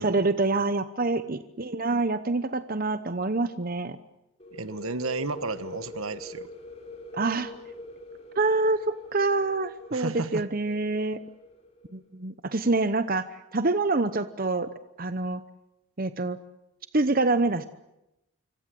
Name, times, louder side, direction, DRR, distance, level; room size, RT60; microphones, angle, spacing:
voice 1, 0.0-4.0 7.1-7.5 8.4-11.2 11.9-13.3 13.5-14.7 15.0-15.4 16.0-16.4 16.9-17.6, right 3 dB, 40° right, 11 dB, 0.9 m, -26 dB
sound 1, 4.4-12.0, left 1 dB, 30° left, 3.2 m, -44 dB
voice 2, 4.5-6.5 9.9-10.4, right 3 dB, 75° right, 12 dB, 1.4 m, -33 dB
26.0 x 25.0 x 7.7 m, 0.89 s
head